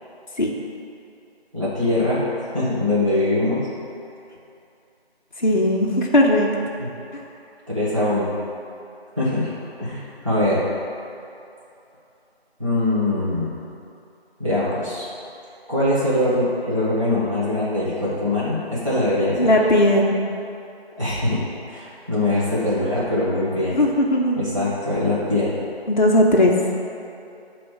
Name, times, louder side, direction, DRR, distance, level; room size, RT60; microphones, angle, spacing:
voice 1, 1.5-3.6 6.8-6.9 7.7-8.3 9.2-9.5 9.8-10.6 12.6-13.5 14.4-15.1 15.7-19.5 21.0-23.8 24.4-25.5, left 1 dB, 30° right, -11 dB, 1.4 m, -22 dB
voice 2, 5.4-6.5 19.4-20.2 23.7-24.4 25.9-26.5, left 1 dB, 45° left, -2 dB, 0.6 m, -17 dB
6.5 x 3.1 x 4.8 m, 2.7 s
figure-of-eight pair, 175°, 32 cm